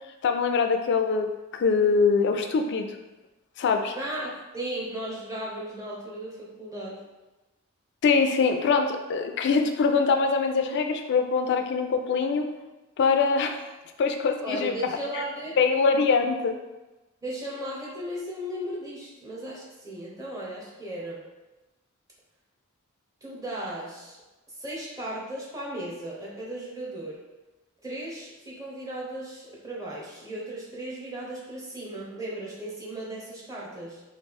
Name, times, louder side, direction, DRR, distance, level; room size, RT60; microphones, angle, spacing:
voice 1, 0.2-2.9 3.6-4.0 8.0-12.5 13.0-13.6 14.0-14.7 15.6-16.5, left 5 dB, 55° left, 6 dB, 0.3 m, -23 dB
voice 2, 3.9-7.0 14.4-15.6 17.2-21.3 23.2-24.2 24.5-27.2 27.8-34.0, right 1 dB, 15° right, -5 dB, 0.7 m, -36 dB
3.1 x 2.4 x 3.4 m, 1.1 s
head